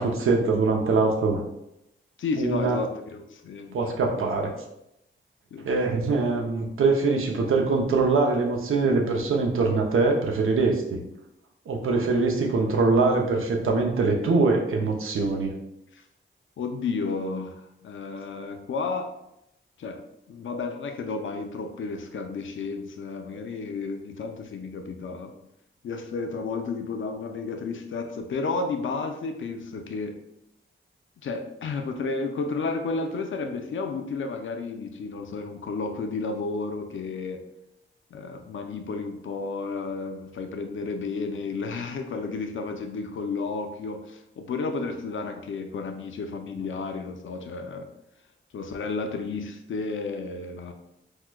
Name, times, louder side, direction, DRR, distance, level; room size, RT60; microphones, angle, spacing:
voice 1, 0.0-1.4 2.4-2.8 3.7-4.5 5.6-11.0 11.7-15.5, right 3 dB, 80° right, 1 dB, 0.6 m, -23 dB
voice 2, 2.2-3.8 5.5-6.1 11.8-12.1 15.9-16.0 16.6-19.1 19.8-20.0 20.3-25.3 25.8-30.2 31.2-37.4 38.1-47.9 48.5-50.7, left 4 dB, 70° left, 5 dB, 0.4 m, -32 dB
4.6 x 2.1 x 2.2 m, 0.83 s
wide cardioid pair, 155°, 21 cm